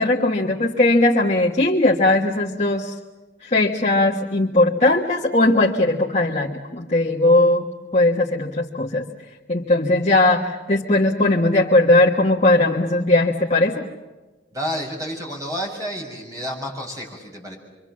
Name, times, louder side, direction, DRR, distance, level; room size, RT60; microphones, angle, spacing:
voice 1, 0.0-2.9 3.5-7.7 7.9-9.0 9.5-13.8, left 2 dB, 35° left, -1 dB, 1.5 m, -18 dB
voice 2, 14.5-17.6, equal, 20° right, -2 dB, 6.8 m, -30 dB
26.5 x 25.0 x 7.6 m, 1.2 s
head